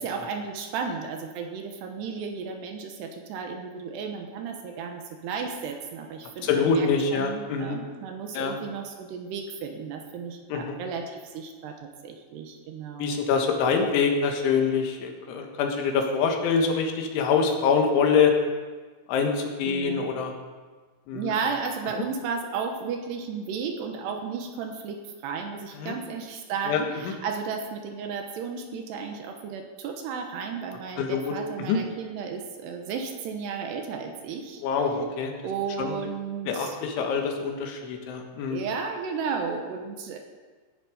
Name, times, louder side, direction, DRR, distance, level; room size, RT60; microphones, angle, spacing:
voice 1, 0.0-13.2 19.6-20.2 21.1-34.6 35.4-37.1 38.5-40.2, right 5 dB, 75° right, 4 dB, 3.0 m, -34 dB
voice 2, 6.4-7.8 8.4-8.6 10.5-10.8 13.0-18.3 19.1-20.3 21.1-21.3 25.8-25.9 26.7-26.8 31.0-31.3 31.7-31.8 34.6-35.3 35.8-36.0 36.5-38.6, left 5 dB, 85° left, 3 dB, 4.0 m, -25 dB
18.0 x 10.5 x 5.0 m, 1.4 s
omnidirectional pair, 5.4 m